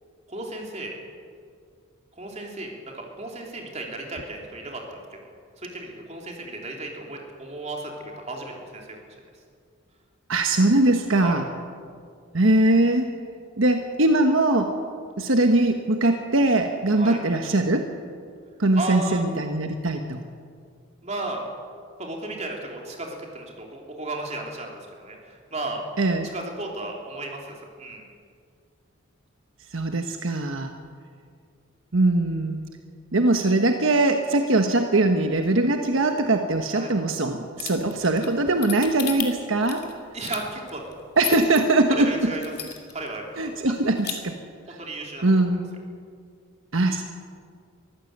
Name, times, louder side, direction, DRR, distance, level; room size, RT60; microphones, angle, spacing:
voice 1, 0.3-1.0 2.1-5.2 5.6-9.0 11.2-11.4 16.9-17.2 18.7-19.2 21.0-21.4 22.0-25.8 26.3-28.0 36.7-36.9 40.1-40.8 42.0-42.4 42.9-43.7 44.7-45.2, right 2 dB, 30° right, 0 dB, 3.4 m, -34 dB
voice 2, 10.3-11.5 12.3-13.1 13.6-14.7 15.2-17.9 18.6-20.2 26.0-26.3 29.7-30.7 31.9-32.6 33.1-39.8 41.2-42.3 43.4-44.3 44.7-44.8 45.2-45.6 46.7-47.0, right 2 dB, 70° right, 5 dB, 1.3 m, -21 dB
sound 1, 37.6-41.6 42.0-42.1 42.4-43.1 43.4-43.5 43.8-44.1, left 11 dB, 50° left, 2.6 m, -33 dB
23.5 x 15.0 x 8.0 m, 2.2 s
head